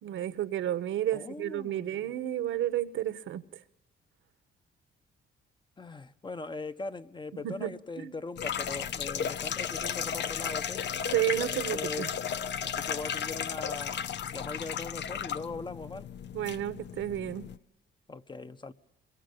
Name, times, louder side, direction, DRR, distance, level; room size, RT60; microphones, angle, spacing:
voice 1, 0.0-3.4 7.3-8.2 11.1-12.1 16.3-17.5, right 12 dB, 80° right, 1.4 m, -32 dB
voice 2, 1.1-2.1 5.8-10.8 11.7-12.2 12.6-16.1 18.1-18.7, left 3 dB, 25° left, 1.2 m, -40 dB
sound 1, 8.4-17.6, left 8 dB, 60° left, 0.9 m, -34 dB
27.0 x 23.0 x 8.6 m
cardioid pair, 90°, 20 cm